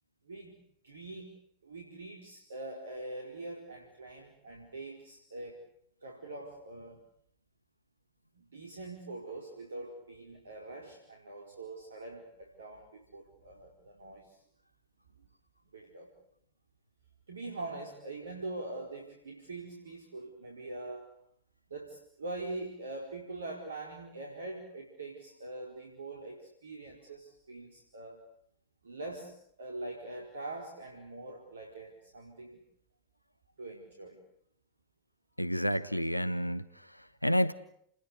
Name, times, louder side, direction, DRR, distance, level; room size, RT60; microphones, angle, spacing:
voice 1, 0.3-0.6 0.8-1.3 1.6-5.6 6.0-7.0 8.4-14.4 15.7-16.1 17.3-21.1 21.7-28.2 28.8-32.6 33.6-34.2, right 2 dB, 70° right, 1 dB, 4.6 m, -43 dB
voice 2, 35.4-37.5, equal, 90° left, 16 dB, 1.1 m, -30 dB
30.0 x 21.0 x 8.4 m, 0.70 s
figure-of-eight pair, 90°, 0 cm